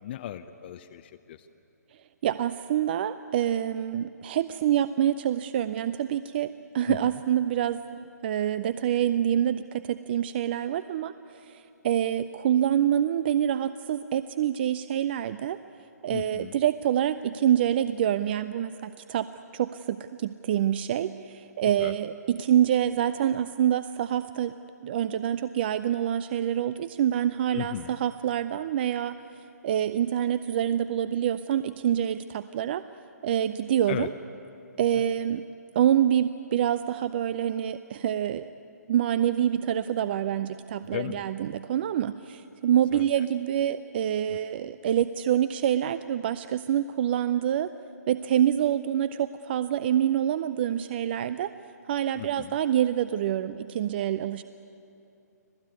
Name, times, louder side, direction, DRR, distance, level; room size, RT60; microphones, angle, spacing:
voice 1, 0.0-1.5 6.9-7.0 16.1-16.6 21.8-21.9 27.5-28.0 33.9-34.1 34.9-35.0 40.9-41.2 42.9-43.3 44.3-44.4 52.2-52.6, left 12 dB, 35° left, 8 dB, 0.7 m, -36 dB
voice 2, 2.2-15.6 16.0-19.3 19.5-24.5 24.8-29.2 29.6-32.8 33.2-34.1 34.8-35.5 35.8-38.5 38.9-47.7 48.1-51.5 51.9-54.4, right 10 dB, 35° right, 14 dB, 0.5 m, -26 dB
25.5 x 17.5 x 9.5 m, 2.7 s
figure-of-eight pair, 140°, 9 cm